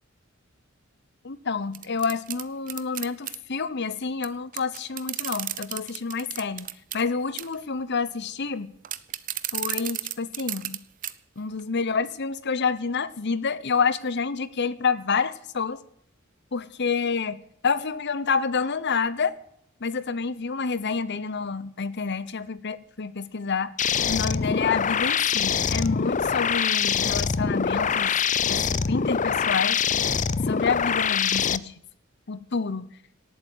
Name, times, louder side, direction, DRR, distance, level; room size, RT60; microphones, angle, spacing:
voice 1, 1.2-6.7 6.9-8.7 9.5-10.8 11.4-15.8 16.5-17.4 17.6-19.3 19.8-23.7 24.1-28.1 28.5-29.8 30.5-31.7 32.3-32.9, left 5 dB, 55° left, 16 dB, 0.9 m, -28 dB
sound 1, 1.7-3.4 4.2-4.3 4.5-7.0 7.4-7.6 8.8-10.8 11.0-11.1 11.6-11.7, right 12 dB, 40° right, 0.8 m, -32 dB
sound 2, 23.8-31.6, left 7 dB, 40° left, 0.5 m, -24 dB
18.5 x 8.9 x 8.1 m, 0.73 s
head